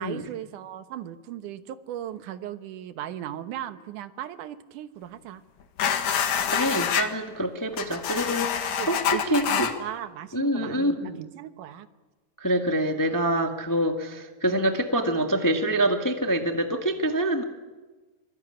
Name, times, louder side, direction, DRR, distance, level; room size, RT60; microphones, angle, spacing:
voice 1, 0.0-5.4 8.8-11.9, right 11 dB, 75° right, 10 dB, 2.6 m, -37 dB
sound 1, 5.8-7.1 7.7-9.7, left 8 dB, 70° left, 3.1 m, -26 dB
voice 2, 6.5-9.7 10.3-11.2 12.4-17.4, right 1 dB, 10° left, 4 dB, 1.0 m, -26 dB
25.0 x 22.0 x 9.9 m, 1.3 s
omnidirectional pair, 3.8 m